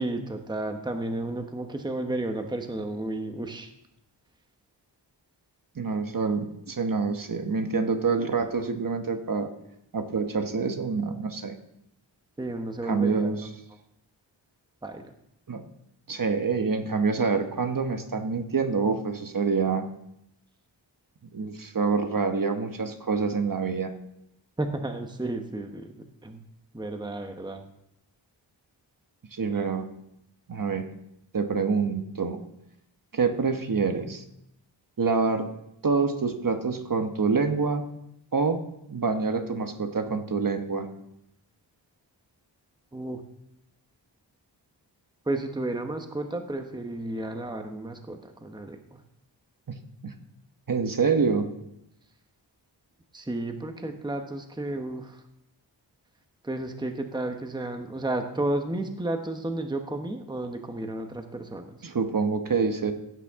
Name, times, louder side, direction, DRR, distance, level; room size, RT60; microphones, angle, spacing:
voice 1, 0.0-3.7 12.4-13.3 14.8-15.1 24.6-25.9 26.2-26.4 26.7-27.7 29.5-29.8 42.9-43.2 45.3-48.8 53.1-55.2 56.4-61.8, right 2 dB, 10° right, 5 dB, 1.0 m, -32 dB
voice 2, 5.8-9.5 9.9-11.6 12.8-13.5 15.5-15.6 16.1-19.9 21.3-23.9 29.3-29.9 30.5-30.9 31.3-32.4 33.1-34.2 35.0-35.5 35.8-37.8 38.3-38.6 38.9-40.9 49.7-49.8 50.0-50.1 50.7-51.5 61.8-62.9, right 4 dB, 45° right, 6 dB, 1.1 m, -26 dB
16.0 x 9.1 x 3.6 m, 0.80 s
wide cardioid pair, 115°, 45 cm